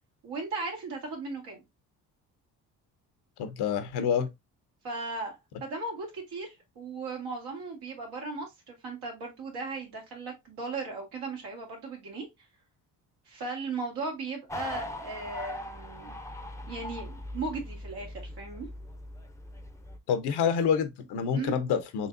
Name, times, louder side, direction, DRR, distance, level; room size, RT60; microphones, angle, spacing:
voice 1, 0.2-1.6 4.8-12.3 13.3-16.1 16.7-18.7 21.3-21.5, right 3 dB, 75° right, 1.9 m, -37 dB
voice 2, 3.4-4.3 20.1-22.1, left 7 dB, 80° left, 0.8 m, -27 dB
sound 1, 14.5-20.0, left 1 dB, 10° left, 0.6 m, -40 dB
4.0 x 3.3 x 2.5 m
supercardioid pair, 65°, 39 cm